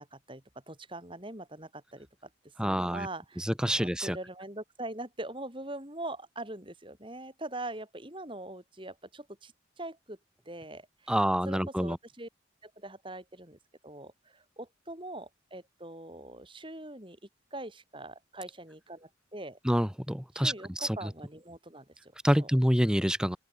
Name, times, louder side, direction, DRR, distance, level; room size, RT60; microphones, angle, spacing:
voice 1, 0.0-2.1 2.4-10.2 10.4-11.2 11.5-12.3 12.6-17.2 17.5-19.6 20.3-22.1 22.4-22.5, right 1 dB, 25° right, 6.1 m, -42 dB
voice 2, 2.6-3.1 3.4-4.2 11.1-12.0 19.6-21.1 22.2-23.4, equal, 5° right, 2.2 m, -27 dB
open air
head